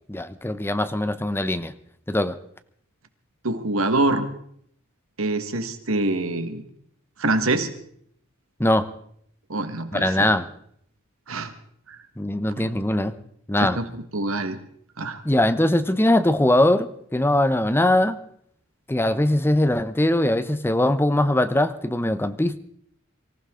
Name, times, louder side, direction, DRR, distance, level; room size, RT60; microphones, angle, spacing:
voice 1, 0.1-1.7 2.1-2.3 8.6-8.9 9.9-10.5 12.2-13.1 13.5-13.8 15.2-18.2 18.9-22.6, left 1 dB, 10° left, 12 dB, 0.8 m, -21 dB
voice 2, 3.4-4.3 5.2-6.6 7.2-7.7 9.5-10.3 11.3-11.5 11.9-12.0 12.6-12.7 13.6-13.8 14.1-14.6 15.0-15.2, right 2 dB, 85° right, 8 dB, 1.7 m, -25 dB
24.0 x 15.0 x 3.8 m, 0.67 s
head